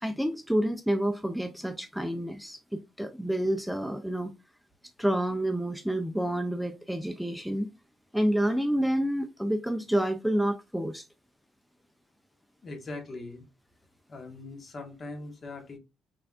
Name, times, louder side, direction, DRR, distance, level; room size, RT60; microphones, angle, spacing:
voice 1, 0.0-4.3 5.0-7.7 8.1-11.1, right 1 dB, ahead, 0.5 m, -29 dB
voice 2, 12.6-13.4 14.1-15.8, left 2 dB, 45° left, 1.5 m, -41 dB
5.9 x 3.4 x 2.5 m
cardioid pair, 90°, 0 cm